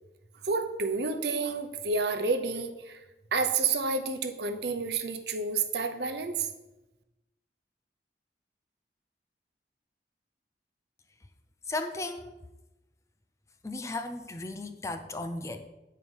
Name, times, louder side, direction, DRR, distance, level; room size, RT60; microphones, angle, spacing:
voice 1, 0.4-3.0 3.3-6.5, right 4 dB, 70° right, 7 dB, 0.7 m, -29 dB
voice 2, 11.7-12.4 13.6-15.7, left 2 dB, 15° left, 8 dB, 0.4 m, -35 dB
9.7 x 4.7 x 5.3 m, 1.0 s
head